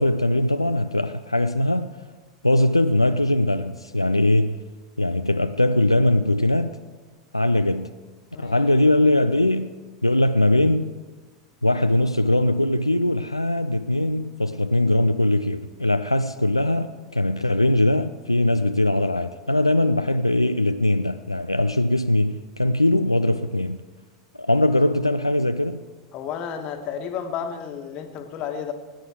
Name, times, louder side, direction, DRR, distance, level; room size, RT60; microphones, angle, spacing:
voice 1, 0.0-1.9 2.4-4.6 5.0-6.7 7.3-7.9 8.4-9.7 10.0-10.9 11.6-23.8 24.4-25.8, left 1 dB, 90° left, 9 dB, 0.4 m, -21 dB
voice 2, 8.3-8.7 26.1-28.7, left 7 dB, 40° left, 6 dB, 1.6 m, -32 dB
18.0 x 9.6 x 4.6 m, 1.4 s
figure-of-eight pair, 85°, 3 cm